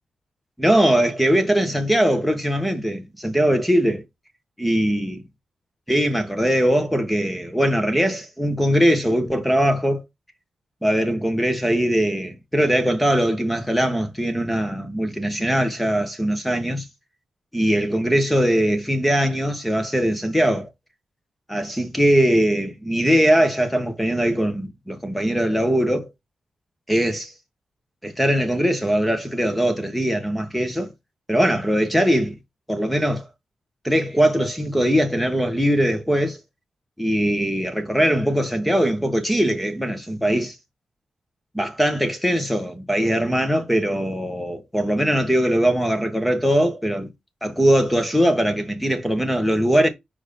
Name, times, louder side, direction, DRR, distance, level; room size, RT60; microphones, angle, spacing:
voice 1, 0.6-4.0 4.6-5.2 5.9-10.0 10.8-16.8 17.5-20.7 21.5-26.1 26.9-27.3 28.0-30.9 31.3-32.4 32.7-33.3 33.8-36.4 37.0-40.5 41.5-47.1 47.4-49.9, equal, ahead, 1.5 m, -21 dB
5.3 x 4.7 x 5.6 m
wide cardioid pair, 110°, 2 cm